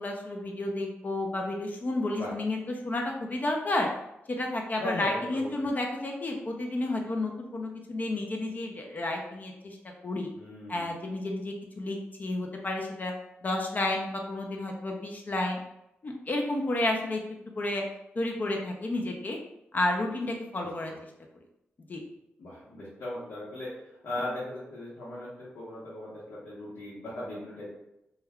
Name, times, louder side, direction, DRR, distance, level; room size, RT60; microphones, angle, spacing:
voice 1, 0.0-2.6 2.8-3.9 4.3-9.8 10.0-10.3 10.7-13.1 13.4-15.6 16.0-17.2 17.6-17.8 18.2-19.4 19.7-20.9 21.9-22.0, left 2 dB, 40° left, 1 dB, 0.4 m, -31 dB
voice 2, 4.8-5.5 10.3-10.9 20.6-21.0 22.4-23.7 24.0-27.7, left 1 dB, 80° left, -9 dB, 0.9 m, -38 dB
2.2 x 2.2 x 3.4 m, 0.87 s
cardioid pair, 85°, 4 cm